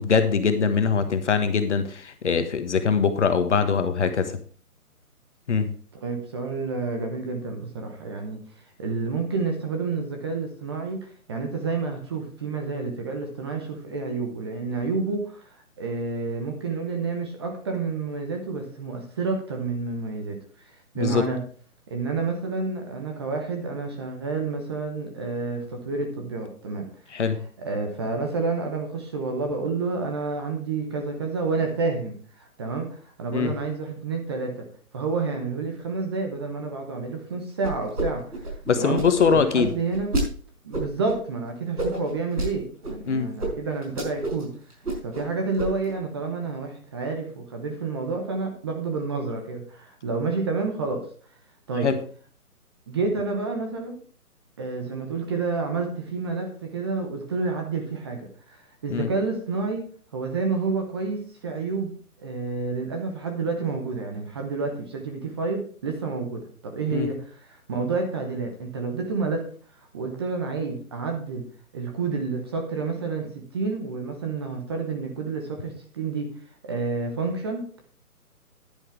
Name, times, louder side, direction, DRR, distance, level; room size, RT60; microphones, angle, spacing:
voice 1, 0.0-4.4 5.5-5.7 20.9-21.2 27.1-27.4 33.3-33.5 38.7-39.7 43.1-43.3 51.8-52.0 58.9-59.1 66.9-67.1, left 6 dB, 50° left, 9 dB, 1.4 m, -22 dB
voice 2, 5.9-8.4 8.8-21.4 21.9-27.2 27.6-34.7 34.9-39.0 39.3-40.1 40.6-44.5 45.0-51.0 51.7-51.9 52.9-54.0 54.6-59.9 60.1-69.5 69.9-71.4 71.7-76.3 76.6-77.8, right 4 dB, 15° right, 3 dB, 0.9 m, -29 dB
sound 1, 37.6-38.1 38.3-40.3 40.7-41.1 41.8-42.5 42.8-42.9 43.4-43.5 43.8-44.4 44.7-45.3 45.6-45.9, right 2 dB, 80° right, 5.3 m, -28 dB
10.5 x 9.8 x 3.4 m, 0.43 s
figure-of-eight pair, 145°, 46 cm